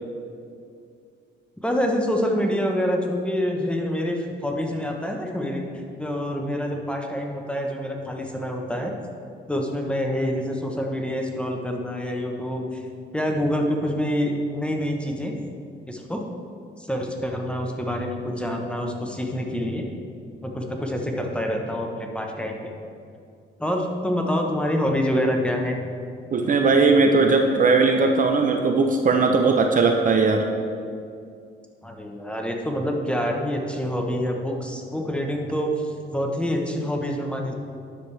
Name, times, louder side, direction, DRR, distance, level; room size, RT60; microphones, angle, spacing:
voice 1, 1.6-8.9 9.5-12.9 13.1-15.3 15.9-16.3 16.8-19.9 20.4-22.6 23.6-25.8 31.8-37.5, equal, 5° left, 1 dB, 1.0 m, -26 dB
voice 2, 26.3-30.5, right 4 dB, 40° right, 3 dB, 0.7 m, -19 dB
10.0 x 6.4 x 3.3 m, 2.3 s
cardioid pair, 90°, 20 cm